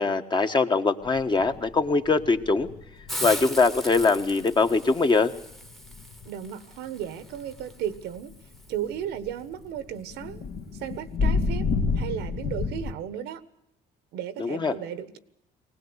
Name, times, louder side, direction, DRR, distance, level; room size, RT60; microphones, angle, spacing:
voice 1, 0.0-2.7 3.2-5.3 14.4-14.7, left 4 dB, 25° left, 7 dB, 1.3 m, -22 dB
sound 1, 1.0-6.4 6.9-12.9, left 4 dB, 70° left, 2.0 m, -31 dB
Hiss, 3.1-8.7, equal, ahead, 1.2 m, -39 dB
voice 2, 6.2-8.3 8.7-10.4 10.8-11.7 12.0-13.4 14.1-15.2, right 10 dB, 90° right, 13 dB, 1.4 m, -34 dB
21.0 x 19.0 x 8.1 m, 0.78 s
cardioid pair, 110°, 17 cm